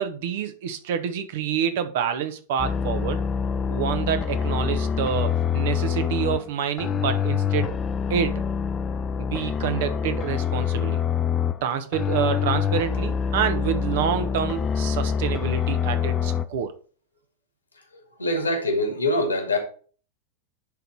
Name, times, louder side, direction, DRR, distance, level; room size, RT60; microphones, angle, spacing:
voice 1, 0.0-3.2 3.7-7.8 8.1-8.4 9.2-11.0 11.6-16.7, right 8 dB, 55° right, 1.0 m, -27 dB
sound 1, 2.6-6.4 6.8-11.6 11.9-16.4, left 7 dB, 25° left, 0.7 m, -25 dB
voice 2, 18.2-19.6, left 1 dB, 80° left, 2.3 m, -23 dB
10.5 x 4.0 x 4.8 m
figure-of-eight pair, 90°, 0 cm